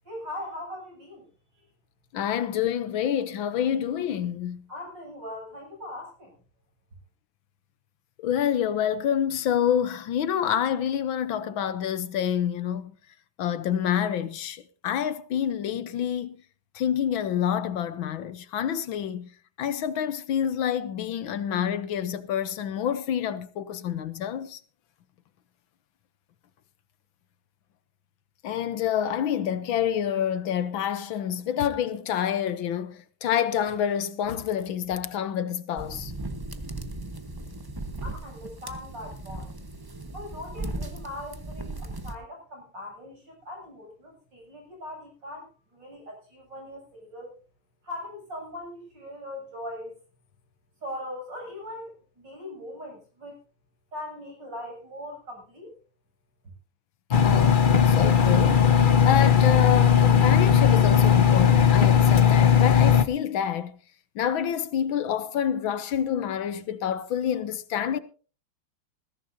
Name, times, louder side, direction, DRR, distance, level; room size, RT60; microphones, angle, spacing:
voice 1, 0.0-1.3 4.7-6.3 38.0-39.6 40.1-47.3 47.8-49.9 50.8-53.4 53.9-55.8, left 1 dB, 55° right, 8.7 m, -40 dB
voice 2, 2.1-4.6 8.2-12.9 13.4-16.4 16.7-19.3 19.6-24.6 28.4-36.1 57.2-63.7 64.1-68.0, left 9 dB, 75° left, 1.6 m, -27 dB
sound 1, 35.8-42.1, right 2 dB, 15° right, 1.0 m, -37 dB
Engine, 57.1-63.0, left 8 dB, 55° left, 0.5 m, -18 dB
20.5 x 15.5 x 2.7 m
omnidirectional pair, 2.3 m